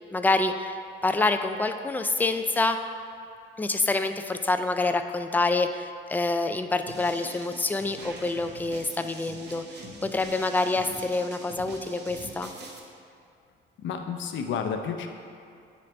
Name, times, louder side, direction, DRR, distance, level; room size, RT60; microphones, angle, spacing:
voice 1, 0.1-2.8 3.6-12.5, left 3 dB, 10° left, 7 dB, 0.3 m, -27 dB
sound 1, 6.9-12.8, right 3 dB, 60° right, 0.9 m, -44 dB
voice 2, 13.8-15.1, left 6 dB, 70° left, 5 dB, 0.6 m, -31 dB
9.5 x 4.0 x 3.3 m, 2.5 s
cardioid pair, 90°, 20 cm